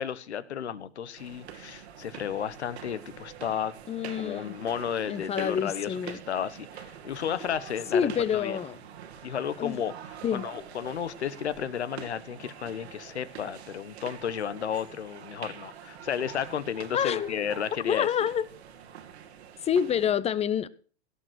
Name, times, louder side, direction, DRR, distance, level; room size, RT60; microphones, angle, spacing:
voice 1, 0.0-3.7 4.2-8.6 9.2-9.9 10.3-18.1, left 8 dB, 90° left, 1.3 m, -33 dB
sound 1, 1.2-20.1, right 8 dB, 75° right, 2.3 m, -45 dB
voice 2, 3.9-4.5 5.0-6.2 7.9-8.8 9.2-9.3 9.6-9.8 10.2-10.4 16.9-17.3 17.9-18.5 19.6-20.7, left 8 dB, 20° left, 0.7 m, -27 dB
17.0 x 6.7 x 6.3 m
hypercardioid pair, 115°, 32 cm